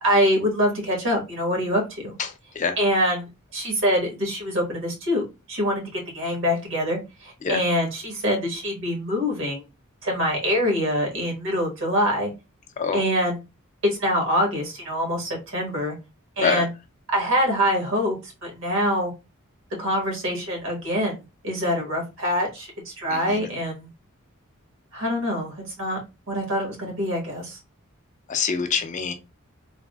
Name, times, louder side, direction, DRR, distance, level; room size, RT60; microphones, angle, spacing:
voice 1, 0.0-2.1 2.8-9.6 10.0-12.3 12.9-13.4 14.0-15.9 16.4-16.7 17.1-19.1 19.8-21.2 21.4-23.9 24.9-26.0 26.3-27.6, equal, 65° right, 0 dB, 1.3 m, -25 dB
voice 2, 2.2-2.7 7.4-7.6 12.8-13.0 16.4-16.6 23.1-23.5 28.3-29.1, left 6 dB, 35° left, 6 dB, 0.4 m, -26 dB
3.4 x 2.0 x 2.2 m, 0.26 s
head